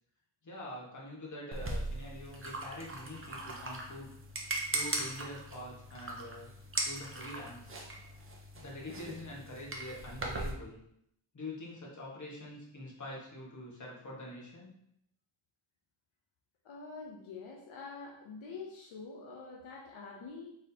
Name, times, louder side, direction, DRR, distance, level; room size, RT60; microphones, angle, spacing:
voice 1, 0.4-4.1 4.4-6.5 6.8-7.7 8.5-10.8 11.3-14.7, left 1 dB, 40° left, -4 dB, 1.4 m, -45 dB
sound 1, 1.5-10.5, right 2 dB, 25° right, 0.7 m, -39 dB
voice 2, 16.6-20.5, left 4 dB, 85° left, -1 dB, 0.8 m, -46 dB
4.3 x 3.6 x 2.8 m, 0.75 s
cardioid pair, 85°, 47 cm